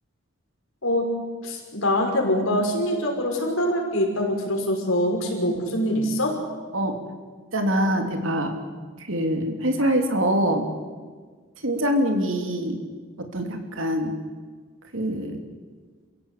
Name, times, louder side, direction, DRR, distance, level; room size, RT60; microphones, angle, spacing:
voice 1, 1.4-6.3, left 1 dB, 85° left, 1 dB, 5.8 m, -24 dB
voice 2, 7.5-8.5 9.1-10.7 11.6-12.8 13.3-14.1 14.9-15.4, equal, 75° right, 4 dB, 3.2 m, -24 dB
28.5 x 16.0 x 8.4 m, 1.5 s
head